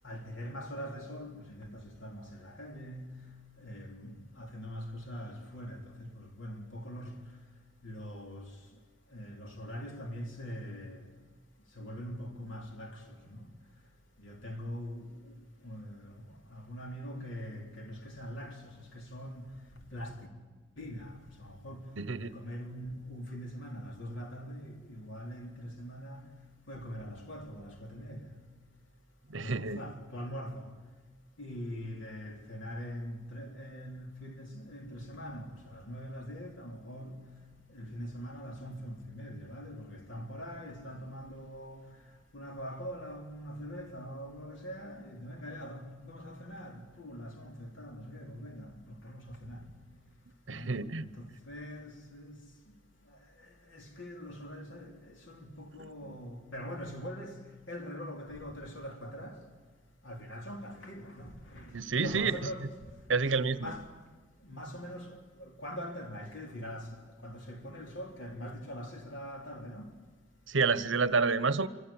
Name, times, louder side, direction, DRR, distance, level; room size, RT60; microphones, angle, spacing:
voice 1, 0.0-3.3 3.6-7.3 7.8-8.5 9.1-11.0 11.8-13.5 14.2-15.3 15.6-19.6 19.9-20.3 20.8-21.9 22.2-26.3 26.7-28.3 29.4-30.7 31.4-37.3 37.7-41.9 42.3-49.7 50.5-52.4 53.4-59.4 60.0-61.8 62.0-62.7 63.6-63.9 64.4-69.9, equal, 80° left, 3.7 m, -43 dB
voice 2, 22.0-22.3 29.3-29.8 50.5-51.1 55.8-56.1 61.7-62.4 63.1-63.7 70.5-71.7, right 4 dB, 75° right, 1.0 m, -29 dB
27.5 x 24.5 x 8.8 m
head